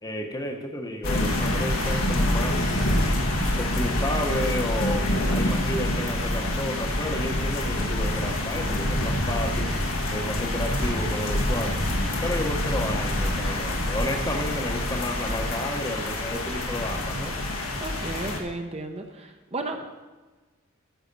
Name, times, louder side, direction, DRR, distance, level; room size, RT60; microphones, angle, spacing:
voice 1, 0.0-3.0 3.5-9.7 10.1-11.8 12.2-17.3, left 1 dB, 20° left, 4 dB, 0.9 m, -31 dB
sound 1, 1.0-18.4, left 1 dB, 90° left, 1.6 m, -26 dB
sound 2, 3.4-11.0, left 2 dB, 65° left, 1.2 m, -45 dB
voice 2, 17.8-19.8, right 2 dB, 30° right, 4 dB, 0.8 m, -34 dB
13.5 x 5.7 x 5.3 m, 1.3 s
head